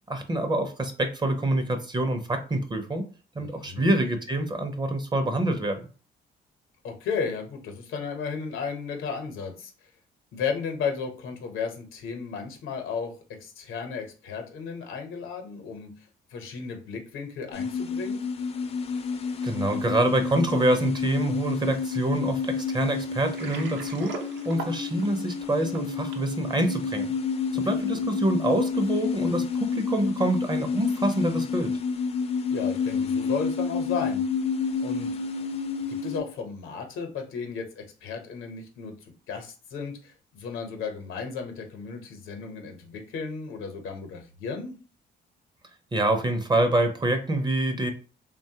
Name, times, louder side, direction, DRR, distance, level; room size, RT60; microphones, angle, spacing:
voice 1, 0.1-3.0 3.4-5.9 19.4-24.2 24.4-27.1 27.5-31.7 45.9-47.9, right 1 dB, 20° right, 7 dB, 0.5 m, -26 dB
voice 2, 3.4-4.0 6.8-9.7 10.3-13.1 13.4-15.9 16.3-18.3 27.5-28.0 32.5-34.2 34.8-35.1 35.9-38.9 39.3-44.7, left 5 dB, 85° left, 4 dB, 0.8 m, -34 dB
sound 1, 17.5-36.2, left 5 dB, 30° left, 0.4 m, -29 dB
Water, 23.2-26.3, right 4 dB, 65° right, 0.6 m, -39 dB
3.0 x 2.2 x 2.7 m, 0.36 s
cardioid pair, 90°, 20 cm